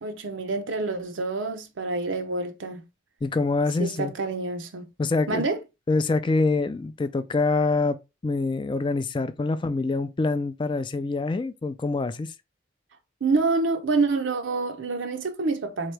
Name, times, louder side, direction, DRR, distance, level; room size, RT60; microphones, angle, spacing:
voice 1, 0.0-2.8 3.8-4.9 5.3-5.6 13.2-15.9, right 3 dB, 80° right, 0.6 m, -27 dB
voice 2, 3.2-4.1 5.0-5.4 5.9-8.0 8.2-12.3, left 3 dB, 25° left, 0.3 m, -25 dB
3.7 x 3.0 x 3.2 m
head